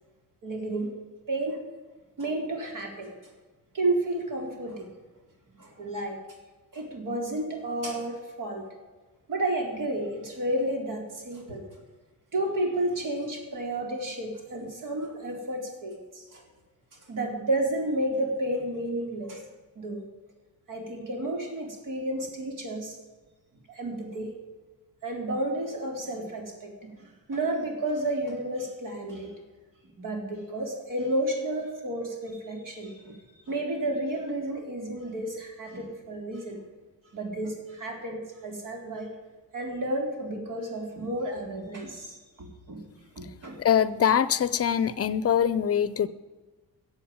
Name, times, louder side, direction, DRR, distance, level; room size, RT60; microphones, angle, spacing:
voice 1, 0.4-0.9 1.3-1.7 2.2-3.1 3.7-4.9 5.6-6.2 6.7-8.7 9.3-11.6 12.3-16.4 17.1-19.4 19.8-20.0 20.7-23.0 23.7-24.3 25.0-29.4 30.0-33.2 33.5-36.6 37.1-39.1 39.5-42.9 43.2-43.6, right 1 dB, 60° right, 2 dB, 4.0 m, -31 dB
voice 2, 43.6-46.1, left 8 dB, 45° left, 16 dB, 0.7 m, -23 dB
14.5 x 8.0 x 8.9 m, 1.3 s
cardioid pair, 125°, 35 cm